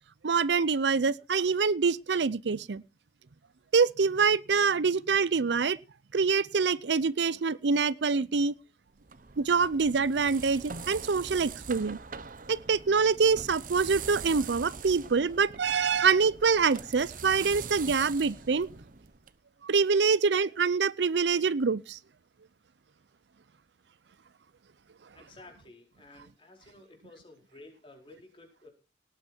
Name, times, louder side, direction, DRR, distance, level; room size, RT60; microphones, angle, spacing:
voice 1, 0.2-2.8 3.7-5.8 6.1-8.5 9.4-12.0 12.5-18.7 19.6-22.0, right 5 dB, 75° right, 0.6 m, -25 dB
sound 1, 9.0-19.3, right 6 dB, 50° right, 0.9 m, -43 dB
voice 2, 25.1-28.7, left 2 dB, 30° left, 4.5 m, -53 dB
18.5 x 9.1 x 4.5 m
head